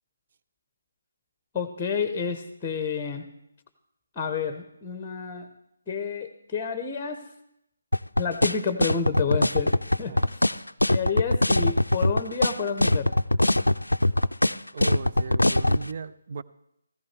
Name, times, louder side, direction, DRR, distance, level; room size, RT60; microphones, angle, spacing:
voice 1, 1.5-3.2 4.2-5.5 5.9-7.2 8.2-9.7 10.0-13.1, left 6 dB, 15° left, 0.9 m, -30 dB
sound 1, 7.9-15.8, left 1 dB, 90° left, 0.4 m, -21 dB
voice 2, 14.7-16.4, right 5 dB, 45° right, 0.5 m, -36 dB
15.0 x 14.5 x 3.3 m
figure-of-eight pair, 150°, 0 cm